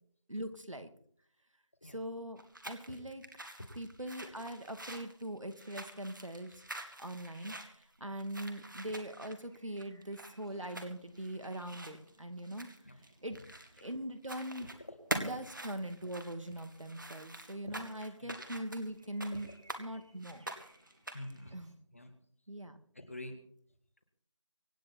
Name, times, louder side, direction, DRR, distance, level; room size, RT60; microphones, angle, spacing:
voice 1, 0.3-0.9 1.8-3.2 3.8-6.6 7.0-12.7 13.2-13.4 13.8-14.7 15.1-19.5 19.8-20.4 21.5-21.8 22.5-22.8, right 1 dB, 85° right, 8 dB, 2.4 m, -41 dB
sound 1, 2.4-13.9 14.2-14.8 15.1-19.8 20.2-21.4, right 1 dB, 40° right, 2.0 m, -45 dB
sound 2, 9.4-21.7, right 1 dB, 10° right, 1.9 m, -67 dB
voice 2, 21.1-21.5 21.9-22.1 22.9-23.3, left 1 dB, 25° left, 8 dB, 1.7 m, -46 dB
25.0 x 9.2 x 4.4 m, 0.62 s
figure-of-eight pair, 175°, 16 cm